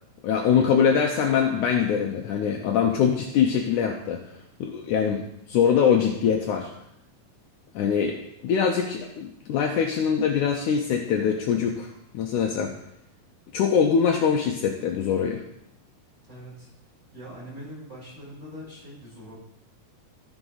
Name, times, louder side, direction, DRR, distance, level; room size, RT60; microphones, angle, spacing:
voice 1, 0.2-4.2 4.6-5.2 5.5-6.7 7.7-8.2 8.4-12.7 13.5-15.4, left 7 dB, 75° left, 1 dB, 2.0 m, -23 dB
voice 2, 16.3-16.7 17.1-19.4, equal, 20° right, -5 dB, 4.1 m, -42 dB
14.0 x 6.1 x 3.9 m, 0.78 s
omnidirectional pair, 4.0 m